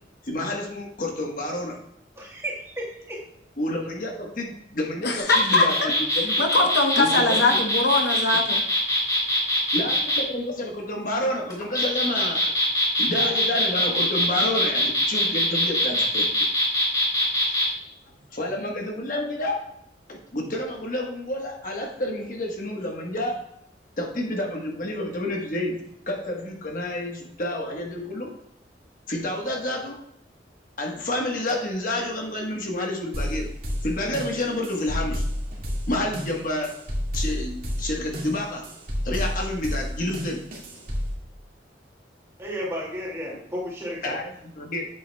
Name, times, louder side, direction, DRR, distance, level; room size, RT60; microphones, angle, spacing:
voice 1, 0.2-1.8 3.6-6.5 7.0-7.6 8.3-8.4 9.7-12.5 13.0-16.5 18.3-19.6 20.1-23.5 24.0-25.8 26.1-28.3 29.1-30.0 30.8-33.5 33.8-35.2 35.9-36.7 37.1-38.6 39.0-40.4 44.0-44.9, left 1 dB, 45° left, 0 dB, 1.2 m, -29 dB
voice 2, 2.2-3.2 42.4-44.1, equal, 15° right, -3 dB, 2.1 m, -33 dB
voice 3, 5.0-5.7 6.4-8.6, left 3 dB, 65° left, 3 dB, 0.9 m, -21 dB
sound 1, 5.2-10.2 11.5-17.7, left 1 dB, 20° left, 2.9 m, -23 dB
sound 2, 33.1-41.1, equal, 50° right, 1.9 m, -31 dB
8.3 x 7.8 x 2.2 m, 0.75 s
head